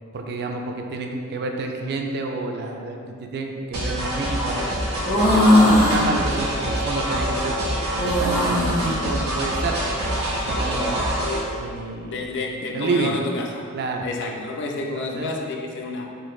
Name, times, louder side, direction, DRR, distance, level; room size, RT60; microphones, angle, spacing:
voice 1, 0.1-4.6 5.1-7.7 7.9-11.3 11.6-12.2 12.7-13.2 13.7-14.1 14.8-15.3, right 3 dB, 50° right, 3 dB, 0.3 m, -29 dB
sound 1, 3.7-11.4, right 1 dB, 75° right, 1.1 m, -26 dB
sound 2, 5.0-6.0 8.0-8.9 10.4-11.1, left 1 dB, 70° left, 1.4 m, -19 dB
voice 2, 12.0-13.7 14.0-16.1, left 2 dB, 55° left, 1 dB, 0.4 m, -29 dB
3.9 x 2.5 x 3.1 m, 2.3 s
head